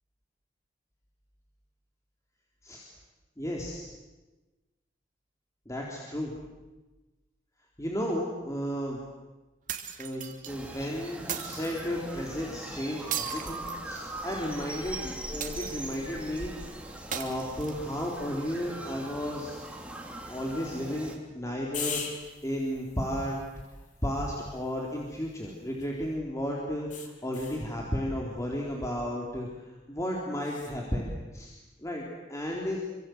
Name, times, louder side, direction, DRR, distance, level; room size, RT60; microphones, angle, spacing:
voice 1, 3.4-3.9 5.7-6.4 7.8-9.0 10.0-16.7 17.1-19.6 20.3-23.4 24.0-29.5 29.9-31.5 31.8-32.8, equal, 20° left, -2 dB, 3.9 m, -33 dB
sound 1, 9.7-10.5 11.3-11.9 13.1-14.3 15.4-16.1 17.1-18.1, right 9 dB, 45° right, 2.9 m, -37 dB
sound 2, 10.5-21.2, right 1 dB, 5° right, 3.4 m, -41 dB
Air pressurising, 21.7-26.1 26.9-27.7 30.4-30.8, left 6 dB, 45° left, 4.0 m, -42 dB
27.5 x 26.0 x 8.1 m, 1.1 s
head